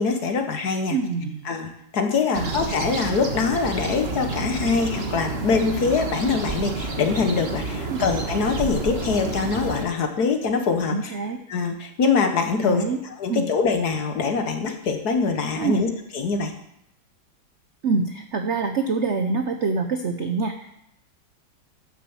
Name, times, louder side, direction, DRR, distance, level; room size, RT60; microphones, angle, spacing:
voice 1, 0.0-1.0 1.4-11.1 11.5-12.8 13.2-16.5, left 5 dB, 55° left, 6 dB, 1.5 m, -24 dB
voice 2, 0.9-1.4 2.3-2.5 7.9-8.1 10.9-11.4 12.6-13.0 13.3-13.4 15.6-15.8 17.8-20.7, right 4 dB, 65° right, 6 dB, 0.7 m, -25 dB
sound 1, 2.3-9.8, right 3 dB, 35° right, 1.3 m, -29 dB
10.5 x 7.0 x 7.1 m, 0.77 s
omnidirectional pair, 2.2 m